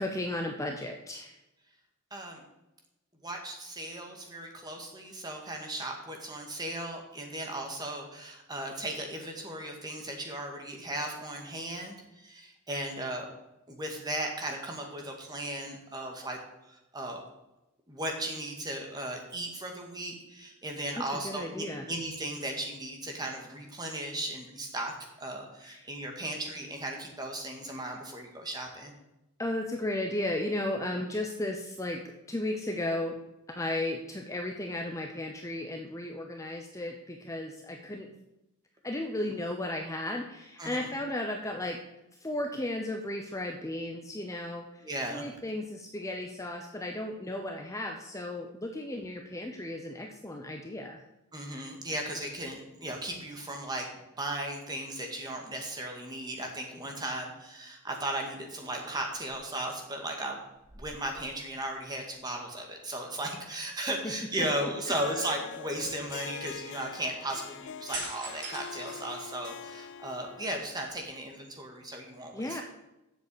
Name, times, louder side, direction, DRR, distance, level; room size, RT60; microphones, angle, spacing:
voice 1, 0.0-1.4 21.1-21.9 25.6-25.8 29.4-33.2 33.5-38.1 38.8-41.8 42.2-44.8 45.1-51.0 64.4-64.5 72.3-72.6, left 1 dB, 15° left, 3 dB, 0.8 m, -34 dB
voice 2, 2.1-2.4 3.2-13.3 13.7-17.2 17.9-28.9 40.6-40.9 44.8-45.3 51.3-53.9 54.2-60.4 60.7-72.6, right 1 dB, 20° right, 2 dB, 1.9 m, -36 dB
sound 1, 57.8-58.1 58.5-59.3 60.5-61.8 62.1-62.3 67.9-69.8 70.3-71.2, right 3 dB, 55° right, 3.1 m, -44 dB
Harp, 64.9-70.7, left 8 dB, 55° left, 0.3 m, -43 dB
7.9 x 7.0 x 8.4 m, 0.94 s
head